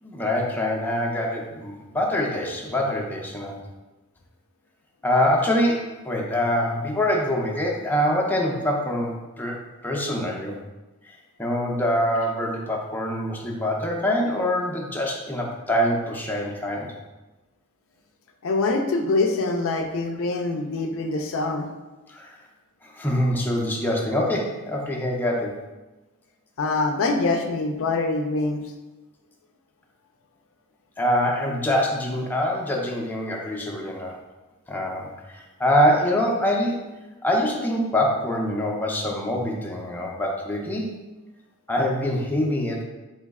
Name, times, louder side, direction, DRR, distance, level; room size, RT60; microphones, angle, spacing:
voice 1, 0.0-3.6 5.0-9.6 9.8-10.6 11.1-11.2 11.4-16.9 22.1-22.4 22.8-25.6 31.0-34.2 34.7-36.9 37.2-40.9 41.7-42.8, left 1 dB, 10° left, -2 dB, 0.5 m, -24 dB
voice 2, 18.4-21.7 26.6-28.6, left 3 dB, 65° left, 4 dB, 0.4 m, -24 dB
3.9 x 3.1 x 3.5 m, 1.1 s
head